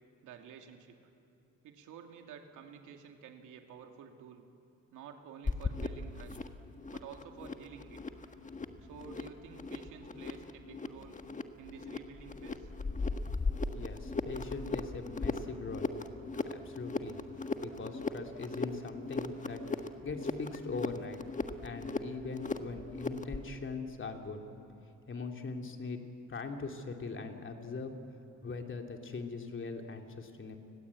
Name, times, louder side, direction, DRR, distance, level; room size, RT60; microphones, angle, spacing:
voice 1, 0.2-1.0 1.6-4.5 4.9-6.4 6.9-8.0 8.8-11.2 11.6-12.7, right 7 dB, 85° right, 4 dB, 2.7 m, -50 dB
sound 1, 5.5-23.5, left 3 dB, 25° left, 1.5 m, -38 dB
voice 2, 13.7-15.9 16.5-17.2 17.6-19.6 20.0-21.2 21.6-24.4 25.1-26.0 26.3-27.9 28.4-30.6, left 4 dB, 40° left, 4 dB, 2.9 m, -41 dB
30.0 x 20.5 x 8.5 m, 2.7 s
cardioid pair, 90°, 30 cm